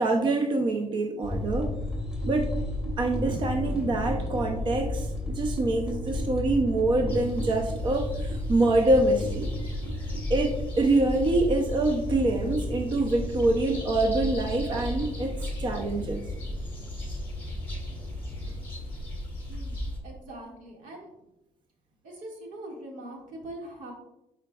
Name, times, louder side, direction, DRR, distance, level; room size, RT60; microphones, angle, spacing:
voice 1, 0.0-1.7 2.3-2.5 3.0-9.5 10.3-16.2, right 2 dB, 35° right, 3 dB, 0.6 m, -25 dB
sound 1, 1.2-19.7, left 1 dB, 5° right, 2.5 m, -34 dB
sound 2, 7.1-20.0, equal, 15° left, 2.2 m, -37 dB
voice 2, 20.0-21.1 22.0-23.9, right 1 dB, 80° right, -1 dB, 2.0 m, -42 dB
10.0 x 4.5 x 2.4 m, 0.88 s
cardioid pair, 125°, 13 cm